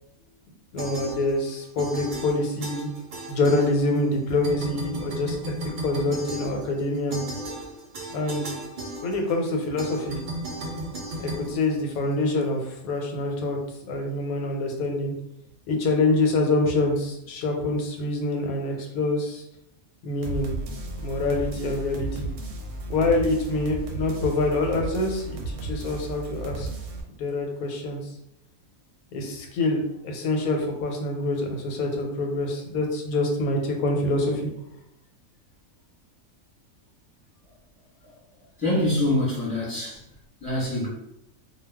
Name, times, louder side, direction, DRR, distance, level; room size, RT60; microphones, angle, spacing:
voice 1, 0.7-2.9 3.3-5.5 5.8-7.2 8.1-8.5 9.0-10.2 11.2-13.6 13.9-15.1 15.7-19.4 20.0-20.5 21.0-22.3 22.9-26.7 27.2-28.0 29.1-34.4, left 2 dB, 85° left, 2 dB, 1.1 m, -26 dB
sound 1, 0.8-1.5 1.8-4.1 4.4-12.3, right 1 dB, 90° right, 0.4 m, -35 dB
sound 2, 20.2-27.0, right 2 dB, 65° right, 0.8 m, -34 dB
voice 2, 38.6-40.0 40.4-40.9, left 1 dB, 5° left, -7 dB, 0.8 m, -25 dB
2.3 x 2.2 x 3.3 m, 0.77 s
omnidirectional pair, 1.5 m